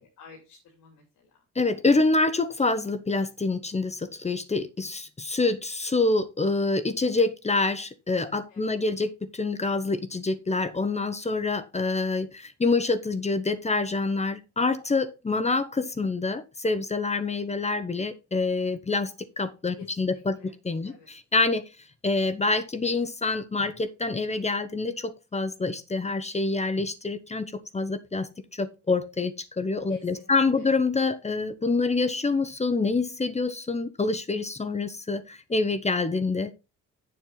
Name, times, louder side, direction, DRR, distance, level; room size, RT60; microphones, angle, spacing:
voice 1, 0.0-1.4 8.5-8.9 19.7-20.5 20.8-21.1 29.9-30.7, left 5 dB, 90° left, 1 dB, 2.8 m, -52 dB
voice 2, 1.5-21.6 22.0-36.6, left 3 dB, 20° left, 12 dB, 1.1 m, -26 dB
8.2 x 7.5 x 4.0 m, 0.28 s
cardioid pair, 90°, 30 cm